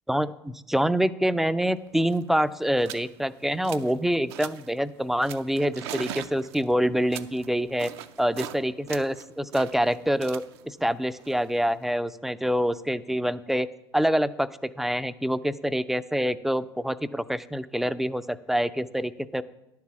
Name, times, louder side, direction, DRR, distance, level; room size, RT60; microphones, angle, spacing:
voice 1, 0.1-7.9 8.2-13.7 13.9-19.4, equal, ahead, 14 dB, 0.3 m, -26 dB
sound 1, 1.7-1.8 2.0-2.3 2.8-3.1 3.4-4.0 4.3-4.7 5.2-8.6 8.9-11.9, right 11 dB, 70° right, 0.6 m, -41 dB
10.5 x 4.7 x 7.0 m, 0.92 s
hypercardioid pair, 80°, 14 cm